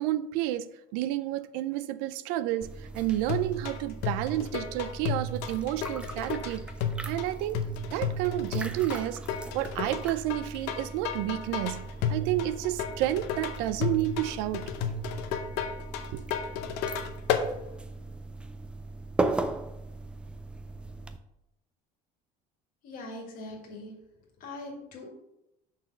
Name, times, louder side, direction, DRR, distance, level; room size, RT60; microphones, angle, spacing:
voice 1, 0.0-6.7 7.0-9.2 9.5-14.6 16.1-16.2, right 14 dB, 80° right, 0.5 m, -30 dB
sound 1, 2.6-21.2, right 2 dB, 5° right, 0.3 m, -38 dB
sound 2, 3.3-17.5, left 6 dB, 70° left, 0.8 m, -33 dB
voice 2, 22.8-24.0 24.4-25.1, left 2 dB, 50° left, 2.0 m, -41 dB
6.3 x 4.0 x 5.5 m
cardioid pair, 155°, 18 cm